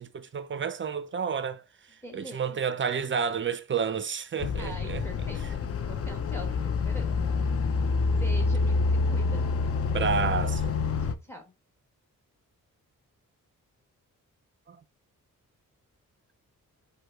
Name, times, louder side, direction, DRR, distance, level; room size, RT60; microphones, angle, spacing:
voice 1, 0.0-5.3 9.9-10.8 14.7-14.8, right 6 dB, 35° right, 0.4 m, -31 dB
voice 2, 2.0-2.6 4.6-7.3 8.2-9.5 11.0-11.5, equal, 5° left, 1.3 m, -44 dB
sound 1, 4.4-11.1, left 4 dB, 45° left, 0.5 m, -27 dB
4.9 x 2.2 x 4.5 m
cardioid pair, 90°, 33 cm